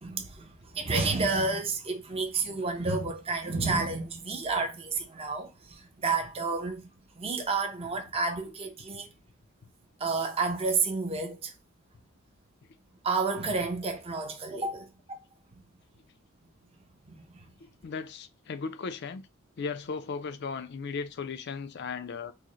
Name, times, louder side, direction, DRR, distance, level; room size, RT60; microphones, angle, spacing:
voice 1, 0.0-6.9 7.1-9.1 10.0-11.5 13.0-14.9 17.0-17.5, right 4 dB, 30° right, 0.7 m, -30 dB
voice 2, 17.6-19.3 19.6-22.3, left 5 dB, 55° left, 0.4 m, -36 dB
4.7 x 2.1 x 3.0 m
head